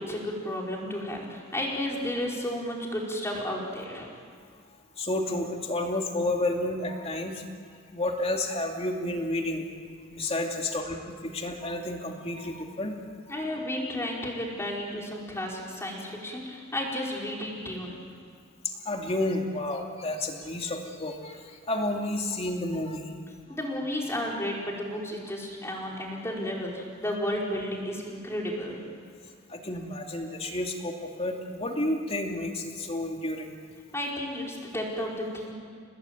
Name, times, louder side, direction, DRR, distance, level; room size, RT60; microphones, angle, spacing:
voice 1, 0.0-4.1 13.3-18.0 23.5-28.9 33.9-35.5, left 1 dB, 15° left, -2 dB, 5.0 m, -32 dB
voice 2, 5.0-7.4 7.9-9.6 10.1-12.9 13.3-13.4 18.6-21.4 21.7-23.1 29.5-33.5, left 1 dB, 30° left, 2 dB, 2.6 m, -31 dB
30.0 x 19.0 x 9.3 m, 2.2 s
head